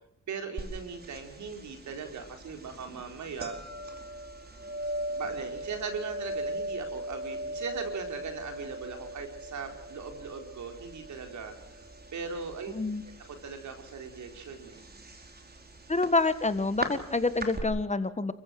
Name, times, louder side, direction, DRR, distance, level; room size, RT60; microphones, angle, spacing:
voice 1, 0.3-3.6 5.2-11.8 12.1-12.7 13.2-14.8, right 5 dB, 75° right, 5 dB, 4.6 m, -39 dB
sound 1, 0.6-17.6, right 1 dB, 35° right, 4.7 m, -40 dB
voice 2, 12.7-13.0 15.9-18.3, left 3 dB, 25° left, 11 dB, 1.8 m, -27 dB
29.0 x 15.5 x 7.9 m, 0.76 s
cardioid pair, 65°, 29 cm